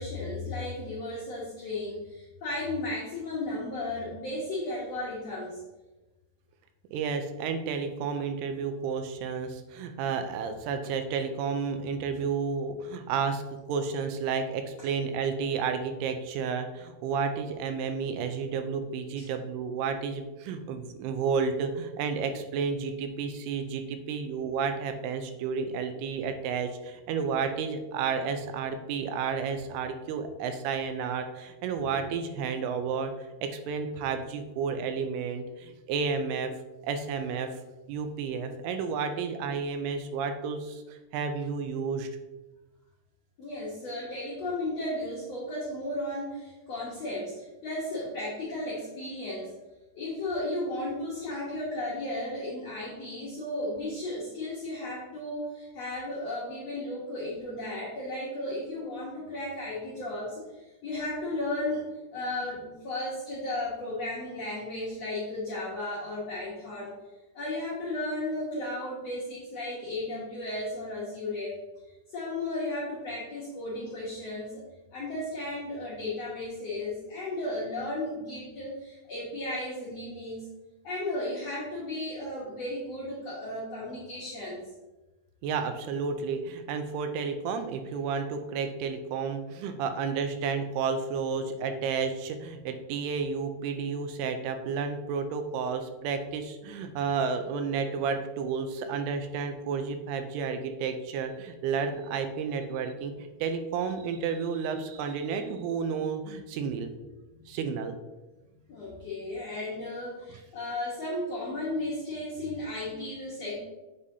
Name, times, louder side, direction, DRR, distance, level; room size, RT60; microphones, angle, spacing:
voice 1, 0.0-5.6 19.2-19.3 43.4-49.5 49.9-61.8 62.1-67.0 67.3-71.6 72.1-74.6 74.9-80.5 80.8-84.6 107.3-107.5 108.7-113.6, left 1 dB, 75° left, -7 dB, 1.5 m, -34 dB
voice 2, 6.9-13.4 13.7-33.1 33.4-36.5 36.8-37.5 37.9-42.1 85.4-106.9 107.5-108.0, right 5 dB, 85° right, 7 dB, 2.6 m, -31 dB
7.5 x 4.9 x 2.7 m, 1.1 s
omnidirectional pair, 4.6 m